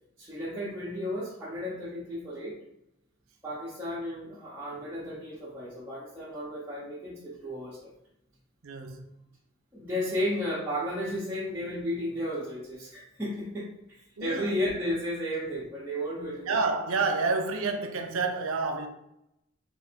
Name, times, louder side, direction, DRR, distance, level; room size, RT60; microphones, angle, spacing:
voice 1, 0.2-2.6 3.4-7.9 9.7-13.7 14.2-16.6, equal, 10° right, 0.7 m, -33 dB
voice 2, 8.6-9.0 14.2-14.5 16.5-18.9, right 4 dB, 70° right, 0.5 m, -29 dB
3.8 x 2.5 x 4.3 m
head